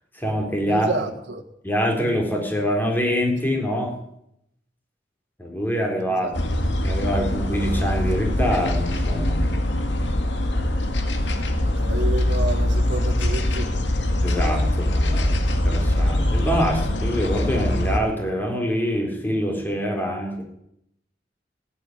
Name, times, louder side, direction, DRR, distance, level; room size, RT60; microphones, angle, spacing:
voice 1, 0.1-0.9 1.6-3.9 5.4-6.5 6.8-9.4 14.2-15.3 15.6-20.4, equal, 10° left, 3.9 m, -25 dB
voice 2, 0.7-1.4 6.2-6.4 11.8-13.7, right 2 dB, 90° right, 1.6 m, -29 dB
sound 1, 6.3-18.0, left 1 dB, 80° left, 2.1 m, -22 dB
15.5 x 9.6 x 9.3 m
head